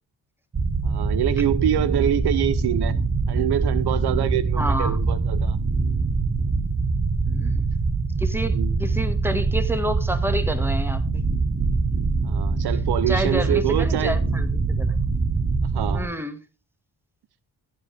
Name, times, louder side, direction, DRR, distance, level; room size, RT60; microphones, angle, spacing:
sound 1, 0.5-16.0, right 4 dB, 35° right, 1.7 m, -23 dB
voice 1, 0.8-3.0 3.3-5.6 8.5-8.7 12.2-14.2 15.7-16.1, right 11 dB, 75° right, 0.7 m, -25 dB
voice 2, 4.6-5.0 7.3-7.7 8.2-11.2 13.1-15.1 15.9-16.4, equal, 5° right, 2.0 m, -29 dB
15.5 x 8.3 x 3.5 m
cardioid pair, 65°, 39 cm